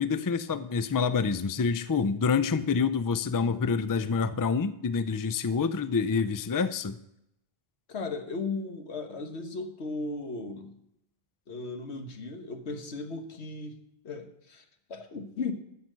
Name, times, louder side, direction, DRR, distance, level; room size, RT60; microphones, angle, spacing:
voice 1, 0.0-7.0, left 5 dB, 30° left, 13 dB, 0.4 m, -27 dB
voice 2, 7.9-10.8 11.5-13.8 14.0-15.5, left 3 dB, 90° left, 6 dB, 1.5 m, -36 dB
13.0 x 5.8 x 7.6 m, 0.79 s
omnidirectional pair, 1.1 m